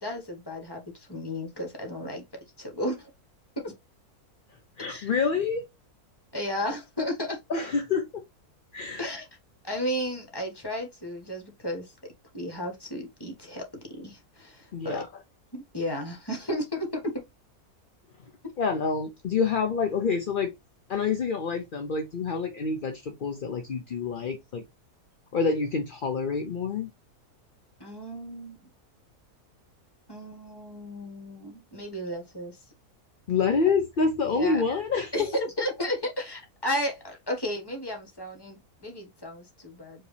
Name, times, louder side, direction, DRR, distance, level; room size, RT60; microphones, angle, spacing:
voice 1, 0.0-2.2 2.6-3.1 3.6-3.7 4.9-5.1 6.3-7.4 9.0-9.3 9.6-11.9 12.3-15.0 15.5-17.2 27.8-28.6 30.1-32.6 34.3-34.6 35.1-40.1, equal, 15° left, 1.5 m, -33 dB
voice 2, 4.8-5.6 7.5-8.2 8.7-9.1 14.7-15.1 18.6-20.5 20.9-24.6 25.3-26.9 33.3-35.3, left 5 dB, 50° left, 0.7 m, -27 dB
4.9 x 3.0 x 3.2 m
omnidirectional pair, 1.6 m